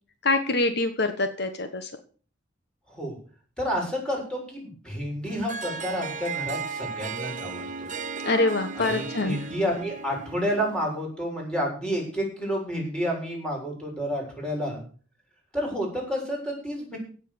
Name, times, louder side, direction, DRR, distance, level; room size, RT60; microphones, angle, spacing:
voice 1, 0.2-1.9 8.2-9.4, left 2 dB, 60° left, 8 dB, 1.4 m, -25 dB
voice 2, 3.6-7.6 8.8-14.8 15.5-17.0, equal, 5° left, -2 dB, 7.3 m, -30 dB
Harp, 5.3-11.0, right 5 dB, 45° right, 1.4 m, -35 dB
16.5 x 7.5 x 7.2 m, 0.41 s
head